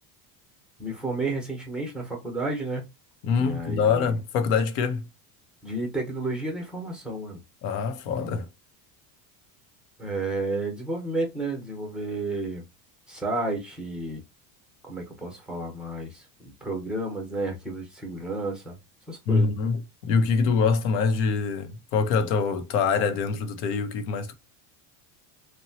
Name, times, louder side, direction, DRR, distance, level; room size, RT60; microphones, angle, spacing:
voice 1, 0.8-2.9 3.3-4.2 5.6-7.4 10.0-12.7 13.1-14.2 14.8-18.8 19.1-19.5, right 2 dB, ahead, 0.7 m, -31 dB
voice 2, 3.2-5.0 7.6-8.5 19.3-24.3, left 5 dB, 75° left, 0.8 m, -24 dB
2.9 x 2.2 x 2.7 m
cardioid pair, 140°, 47 cm